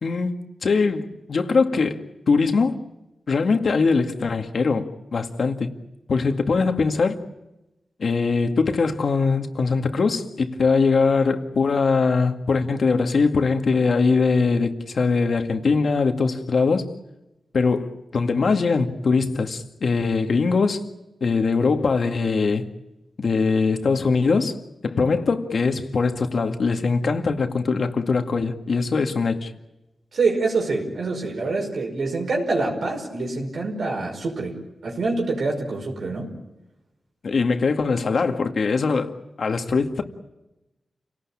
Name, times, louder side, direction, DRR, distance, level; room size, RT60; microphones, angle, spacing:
voice 1, 0.0-2.8 3.3-5.7 6.1-7.2 8.0-16.8 17.5-20.8 21.2-22.7 23.2-24.6 24.8-29.5 37.2-40.0, left 4 dB, 60° left, 2.2 m, -22 dB
voice 2, 30.1-36.3, right 3 dB, 75° right, 5.6 m, -26 dB
29.0 x 18.5 x 8.8 m
wide cardioid pair, 100°, 0 cm